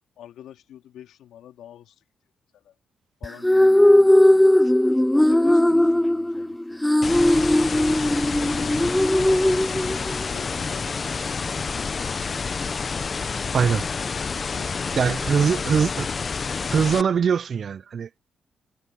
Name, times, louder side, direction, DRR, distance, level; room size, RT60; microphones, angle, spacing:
voice 1, 0.2-2.0 2.5-2.7 3.2-4.6 5.2-6.8 8.2-9.5 13.4-14.0 14.4-15.9, left 11 dB, 85° left, 3.3 m, -45 dB
sound 1, 3.2-10.3, left 1 dB, 10° left, 0.4 m, -18 dB
sound 2, 7.0-17.0, left 5 dB, 45° left, 1.0 m, -29 dB
voice 2, 15.0-16.1 16.7-18.2, right 7 dB, 60° right, 0.6 m, -22 dB
cardioid pair, 70°, 0 cm